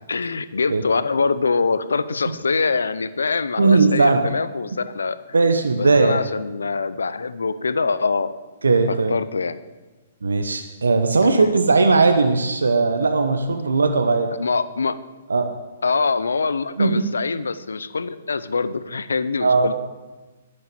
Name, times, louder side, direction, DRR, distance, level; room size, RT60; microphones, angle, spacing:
voice 1, 0.1-5.2 5.8-8.3 9.1-9.6 11.2-11.5 14.4-15.0 15.8-19.7, left 4 dB, 85° left, 14 dB, 0.7 m, -24 dB
voice 2, 3.6-4.3 5.3-6.2 8.6-9.2 10.2-14.3 15.3-15.5 16.8-17.0 19.4-19.7, right 3 dB, 85° right, 6 dB, 1.0 m, -18 dB
11.0 x 6.4 x 8.8 m, 1.2 s
hypercardioid pair, 130°, 0 cm